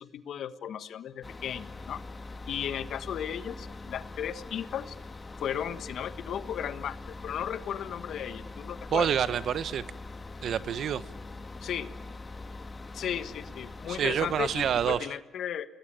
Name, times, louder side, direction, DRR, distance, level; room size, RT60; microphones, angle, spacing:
voice 1, 0.0-2.0 2.5-4.9 5.4-7.0 7.2-9.1 11.6-11.9 12.9-15.7, left 9 dB, 70° left, 1.5 m, -35 dB
sound 1, 1.2-15.0, left 3 dB, 30° left, 2.0 m, -43 dB
voice 2, 8.9-9.9 10.4-11.0 13.9-15.0, right 9 dB, 65° right, 1.1 m, -27 dB
30.0 x 19.5 x 8.9 m
cardioid pair, 90°, 0 cm